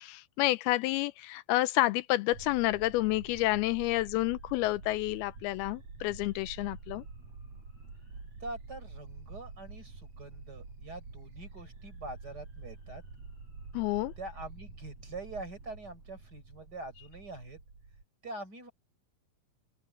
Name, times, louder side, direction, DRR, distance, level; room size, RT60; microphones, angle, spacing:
voice 1, 0.0-7.0 13.7-14.1, left 18 dB, 85° left, 2.5 m, -29 dB
sound 1, 2.3-18.0, right 4 dB, 45° right, 6.7 m, -48 dB
voice 2, 8.4-13.0 14.2-17.6 18.2-18.7, right 2 dB, 25° right, 5.6 m, -44 dB
open air
omnidirectional pair, 4.4 m